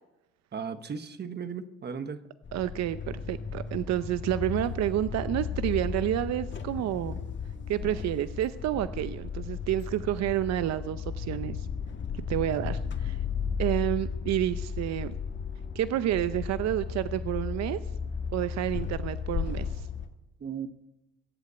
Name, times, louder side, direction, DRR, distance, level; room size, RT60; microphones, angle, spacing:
voice 1, 0.5-2.2 20.4-20.7, right 6 dB, 35° right, 1.3 m, -36 dB
sound 1, 2.4-20.1, left 6 dB, 40° left, 1.8 m, -35 dB
voice 2, 2.5-7.2 7.7-11.7 12.3-13.2 13.6-15.1 15.7-17.8 18.3-19.8, right 12 dB, 65° right, 0.7 m, -29 dB
21.0 x 8.2 x 8.2 m
cardioid pair, 105°, 29 cm